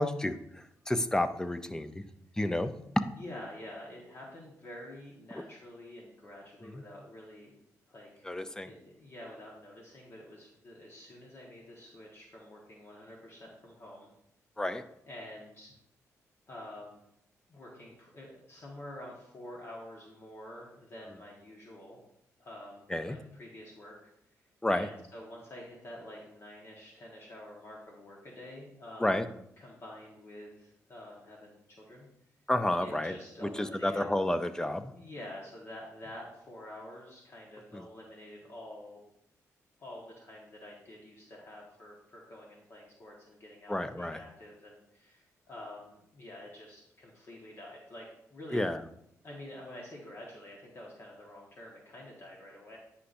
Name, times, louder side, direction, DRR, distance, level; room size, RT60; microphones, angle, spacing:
voice 1, 0.0-2.1 2.4-2.7 6.6-6.8 8.2-8.7 14.6-14.8 22.9-23.2 24.6-24.9 29.0-29.3 32.5-33.1 33.4-34.9 37.7-37.8 43.7-44.2 48.5-48.8, left 1 dB, 10° left, 10 dB, 0.5 m, -31 dB
voice 2, 3.1-7.5 7.9-8.3 8.6-14.1 15.1-15.7 16.5-17.0 17.5-22.0 22.4-24.1 24.4-29.1 29.6-32.1 32.8-34.0 34.9-39.0 39.8-48.6 49.2-52.8, left 1 dB, 45° left, -2 dB, 1.4 m, -48 dB
9.7 x 5.7 x 2.6 m, 0.76 s
cardioid pair, 95°, 6 cm